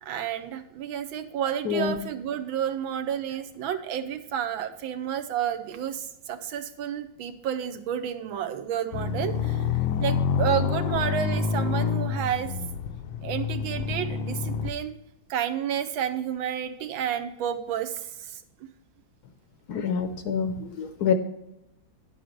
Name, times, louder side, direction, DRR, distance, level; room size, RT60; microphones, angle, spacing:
voice 1, 0.0-9.6 10.0-12.5 13.2-14.9 15.3-18.4, right 9 dB, 85° right, 9 dB, 1.6 m, -30 dB
voice 2, 1.7-2.0 19.7-21.1, left 6 dB, 65° left, 9 dB, 1.0 m, -26 dB
sound 1, 8.9-14.7, left 6 dB, 85° left, 1.4 m, -27 dB
10.0 x 7.8 x 3.1 m, 0.85 s
omnidirectional pair, 2.1 m